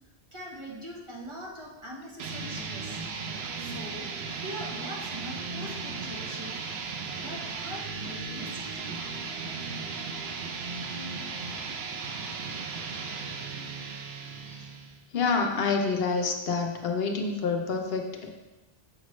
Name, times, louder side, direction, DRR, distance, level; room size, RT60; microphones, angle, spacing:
voice 1, 0.3-3.0 3.6-4.1 4.3-6.6 7.1-9.0, equal, 30° right, -3 dB, 1.1 m, -42 dB
sound 1, 2.2-15.0, right 4 dB, 85° right, 0.9 m, -36 dB
voice 2, 15.1-18.3, left 4 dB, 75° left, 3 dB, 0.9 m, -28 dB
7.2 x 5.6 x 3.1 m, 1.1 s
omnidirectional pair, 1.0 m